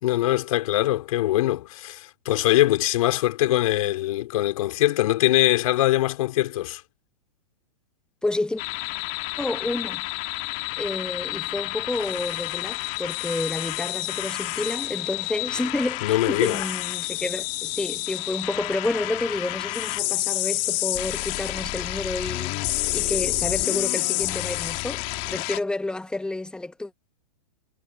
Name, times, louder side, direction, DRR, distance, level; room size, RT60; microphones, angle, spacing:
voice 1, 0.0-6.8 16.0-16.6, left 15 dB, 60° left, 4.4 m, -22 dB
voice 2, 8.2-8.6 9.4-10.0 10.8-22.6 22.9-25.0 25.3-26.9, left 2 dB, 5° left, 1.8 m, -30 dB
sound 1, 8.6-25.6, left 23 dB, 40° left, 2.8 m, -29 dB
hypercardioid pair, 125°, 20 cm